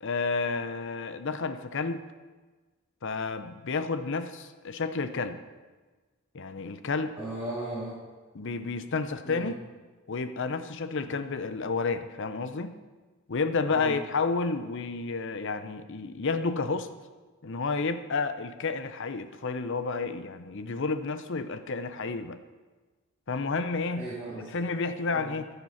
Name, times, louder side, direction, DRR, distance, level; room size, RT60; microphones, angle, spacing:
voice 1, 0.0-2.0 3.0-5.4 6.3-7.2 8.3-9.5 10.1-12.8 13.3-16.9 17.4-22.4 23.3-24.1 24.5-25.5, left 4 dB, 60° left, 11 dB, 0.7 m, -31 dB
voice 2, 7.2-8.0 9.2-9.5 11.1-11.2 13.7-14.0 24.0-24.5 25.1-25.3, right 1 dB, 10° right, -8 dB, 2.5 m, -37 dB
15.0 x 6.8 x 5.7 m, 1.3 s
head